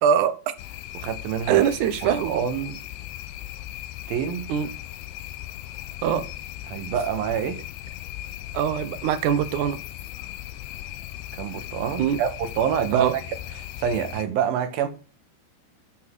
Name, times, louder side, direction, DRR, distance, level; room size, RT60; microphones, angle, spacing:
voice 1, 0.0-0.3 1.5-2.4 4.5-4.7 6.0-6.2 8.5-9.8 12.0-12.2 12.9-13.1, right 9 dB, 80° right, 1.7 m, -22 dB
sound 1, 0.6-14.3, left 13 dB, 75° left, 2.7 m, -38 dB
voice 2, 0.9-1.7 2.0-2.8 4.1-4.5 6.7-7.6 11.4-14.9, right 8 dB, 65° right, 2.9 m, -27 dB
14.0 x 6.1 x 4.6 m
omnidirectional pair, 5.0 m